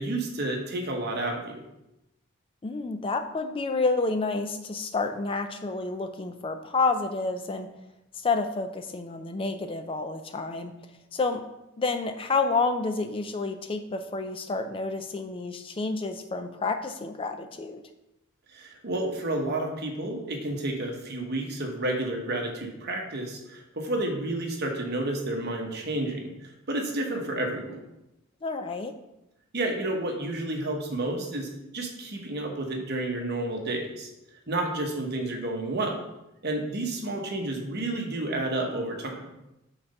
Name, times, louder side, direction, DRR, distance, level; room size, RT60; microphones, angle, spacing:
voice 1, 0.0-1.6 18.5-27.8 29.5-34.1 34.5-36.0 36.4-39.3, right 1 dB, 50° right, 2 dB, 1.1 m, -30 dB
voice 2, 2.6-7.7 8.1-10.7 11.1-11.4 11.8-17.8 28.4-28.9, left 3 dB, 25° left, 7 dB, 0.4 m, -29 dB
5.8 x 4.0 x 5.3 m, 0.91 s
head